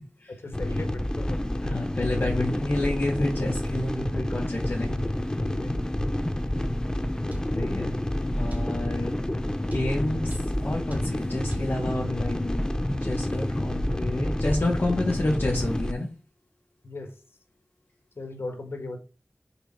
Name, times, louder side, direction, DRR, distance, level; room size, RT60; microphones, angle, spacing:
voice 1, 0.4-1.4 2.0-2.1 4.8-4.9 5.4-5.8 16.8-17.1 18.2-19.0, left 2 dB, 85° left, 1.8 m, -37 dB
sound 1, 0.5-15.9, left 1 dB, 15° left, 0.8 m, -29 dB
voice 2, 1.6-5.1 7.5-8.0 8.4-9.2 9.7-12.7 13.0-16.1, left 2 dB, 55° left, 2.3 m, -29 dB
sound 2, 7.3-7.5 8.5-8.7 9.7-9.9 10.3-10.5 10.9-11.1 11.5-11.7, equal, 40° right, 2.1 m, -34 dB
6.7 x 4.1 x 4.8 m
wide cardioid pair, 65°, 4 cm